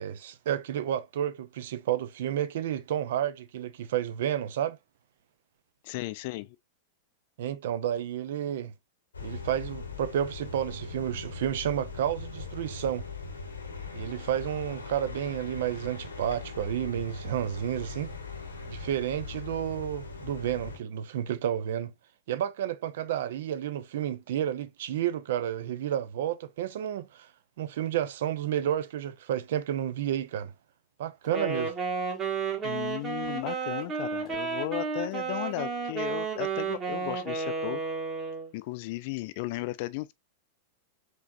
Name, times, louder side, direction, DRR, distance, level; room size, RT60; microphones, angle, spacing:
voice 1, 0.0-4.8 7.4-8.7 9.2-13.0 13.9-18.1 18.7-21.9 22.3-27.3 27.6-30.5 31.0-31.7, right 10 dB, 55° right, 0.4 m, -31 dB
voice 2, 5.8-6.6 32.6-37.8 38.5-40.1, left 18 dB, 45° left, 0.4 m, -35 dB
sound 1, 9.1-20.8, left 4 dB, 75° left, 0.9 m, -40 dB
Wind instrument woodwind instrument, 31.2-38.5, right 5 dB, 30° right, 1.6 m, -32 dB
4.8 x 3.0 x 2.4 m
figure-of-eight pair, 95°, 0 cm